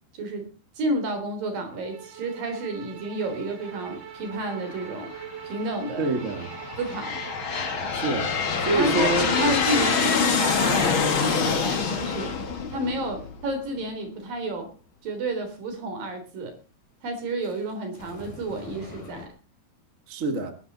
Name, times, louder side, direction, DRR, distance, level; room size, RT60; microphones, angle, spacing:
voice 1, 0.1-0.5 0.8-5.1 5.4-6.1 6.8-7.2 8.7-14.7 15.0-16.5 17.0-19.3, right 1 dB, 65° right, 5.3 m, -30 dB
Bowed string instrument, 1.8-10.9, right 10 dB, 80° right, 4.2 m, -42 dB
Aircraft, 4.7-5.3 6.0-13.5, left 5 dB, 40° left, 2.2 m, -26 dB
voice 2, 6.0-6.6 7.9-9.3 20.1-20.5, right 2 dB, 30° right, 1.7 m, -26 dB
sound 1, 17.4-19.3, left 5 dB, 60° left, 5.2 m, -43 dB
20.0 x 11.5 x 4.2 m
omnidirectional pair, 4.4 m